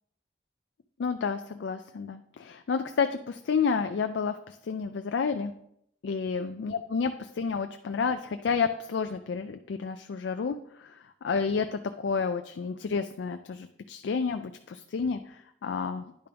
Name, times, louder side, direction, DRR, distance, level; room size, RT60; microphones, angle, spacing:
voice 1, 1.0-5.5 6.0-16.3, left 5 dB, 85° left, 8 dB, 0.4 m, -30 dB
10.0 x 5.1 x 3.4 m, 0.72 s
head